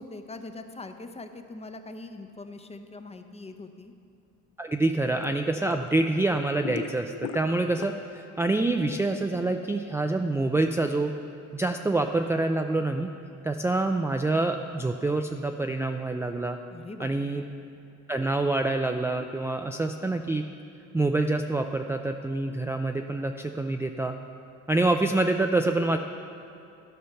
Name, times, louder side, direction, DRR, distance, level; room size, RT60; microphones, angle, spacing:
voice 1, 0.0-3.9 16.7-17.4, left 2 dB, 20° left, 7 dB, 0.7 m, -42 dB
voice 2, 4.6-11.1 11.5-13.1 13.4-16.6 17.0-17.4 18.1-20.4 20.9-24.2 24.7-26.0, right 2 dB, 10° right, 5 dB, 0.3 m, -26 dB
sound 1, 5.2-5.9 6.2-8.2 8.5-10.7, left 9 dB, 75° left, 0.5 m, -39 dB
12.5 x 5.6 x 5.7 m, 2.7 s
cardioid pair, 90°, 30 cm